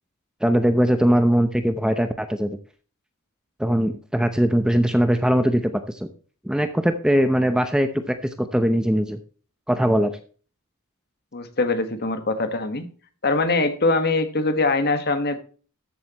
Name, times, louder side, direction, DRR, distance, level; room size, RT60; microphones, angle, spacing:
voice 1, 0.4-2.6 3.6-6.1 6.4-9.2 9.7-10.1, equal, 5° right, 8 dB, 0.7 m, -21 dB
voice 2, 11.3-12.9 13.2-15.4, left 3 dB, 50° left, 9 dB, 1.5 m, -22 dB
14.0 x 8.0 x 3.0 m, 0.40 s
head